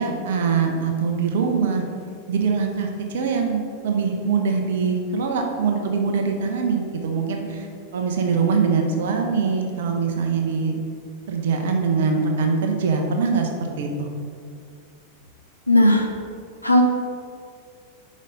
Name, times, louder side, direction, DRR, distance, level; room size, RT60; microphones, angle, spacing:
voice 1, 0.0-1.8 2.3-7.7 7.9-10.8 11.3-14.1, right 5 dB, 60° right, 3 dB, 0.7 m, -23 dB
voice 2, 15.7-16.1 16.6-16.8, left 1 dB, 90° left, 1 dB, 0.6 m, -15 dB
5.3 x 4.2 x 5.2 m, 2.2 s
figure-of-eight pair, 90°, 0 cm